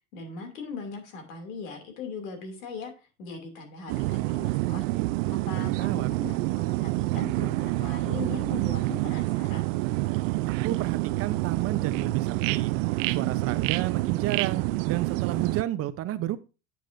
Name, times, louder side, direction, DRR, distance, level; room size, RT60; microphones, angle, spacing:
voice 1, 0.1-2.9 3.2-4.8 5.3-9.7, left 4 dB, 80° left, 5 dB, 2.7 m, -39 dB
sound 1, 3.9-15.6, right 20 dB, 70° right, 0.5 m, -27 dB
voice 2, 5.6-6.4 10.5-12.7 13.1-16.4, right 13 dB, 35° right, 11 dB, 0.7 m, -32 dB
8.9 x 8.0 x 2.6 m, 0.31 s
supercardioid pair, 130°, 40 cm